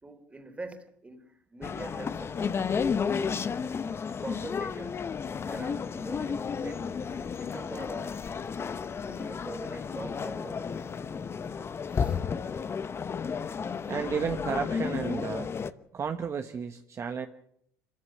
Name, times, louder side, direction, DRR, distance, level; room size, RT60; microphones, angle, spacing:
voice 1, 0.0-2.6 4.2-5.0 5.4-8.3 9.0-10.9 11.4-11.5 11.9-12.2 12.5-12.7 13.6-13.9 15.6-15.7, right 2 dB, 15° right, 3.2 m, -44 dB
sound 1, 1.6-15.7, left 6 dB, 30° left, 0.9 m, -32 dB
voice 2, 13.9-15.6 15.9-17.3, right 6 dB, 35° right, 1.3 m, -32 dB
26.0 x 14.5 x 7.5 m
supercardioid pair, 80°, 8 cm